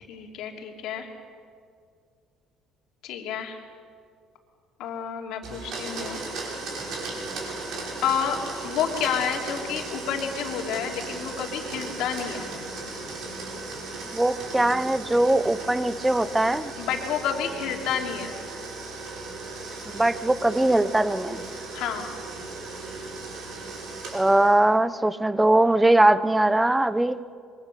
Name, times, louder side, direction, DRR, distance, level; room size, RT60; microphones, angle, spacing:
voice 1, 0.1-1.1 3.0-3.6 4.8-6.2 7.7-12.5 16.8-18.4 21.7-22.1, left 8 dB, 60° left, 2 dB, 2.9 m, -30 dB
Domestic sounds home sounds, 5.4-24.6, right 3 dB, 50° right, 5.6 m, -36 dB
voice 2, 14.1-16.7 19.9-21.4 24.1-27.2, right 1 dB, 5° right, 15 dB, 0.5 m, -21 dB
25.0 x 23.0 x 6.7 m, 2.2 s
cardioid pair, 175°, 0 cm